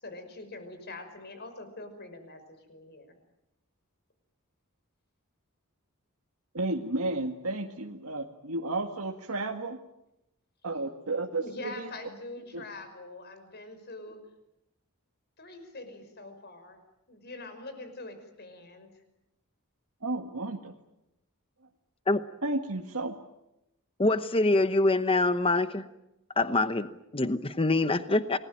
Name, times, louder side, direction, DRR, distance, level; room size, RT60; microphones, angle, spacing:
voice 1, 0.0-3.1 11.4-14.2 15.4-16.8 17.1-18.9 27.7-28.0, left 2 dB, 50° left, 9 dB, 5.6 m, -44 dB
voice 2, 6.5-9.8 10.6-11.9 12.5-12.6 20.0-20.7 22.4-23.1, right 2 dB, 75° right, 2 dB, 1.9 m, -32 dB
voice 3, 24.0-25.8 26.4-28.4, left 2 dB, 25° left, 11 dB, 1.0 m, -25 dB
29.0 x 20.0 x 9.0 m, 0.89 s
head